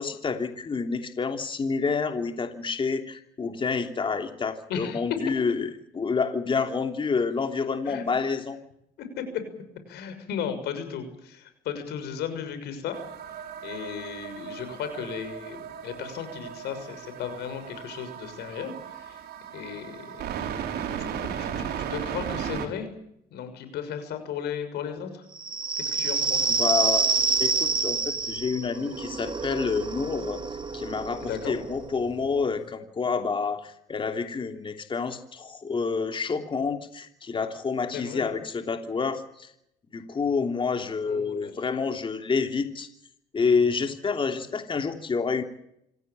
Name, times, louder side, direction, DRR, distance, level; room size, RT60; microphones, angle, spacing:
voice 1, 0.0-8.6 26.6-27.1 27.4-30.4 30.7-39.5 39.9-42.9 43.3-45.4, left 5 dB, 30° left, 6 dB, 3.0 m, -28 dB
voice 2, 4.7-5.0 7.8-8.0 9.2-9.4 9.9-13.0 13.6-19.2 19.5-20.7 21.0-22.9 23.3-25.3 25.8-26.5 31.2-31.5 37.9-38.3 41.1-41.8, left 8 dB, 75° left, 9 dB, 6.5 m, -35 dB
sound 1, 12.9-22.7, right 8 dB, 70° right, 4.9 m, -36 dB
sound 2, 25.4-32.6, right 4 dB, 30° right, 2.8 m, -28 dB
26.5 x 16.5 x 8.8 m, 0.75 s
cardioid pair, 110°, 17 cm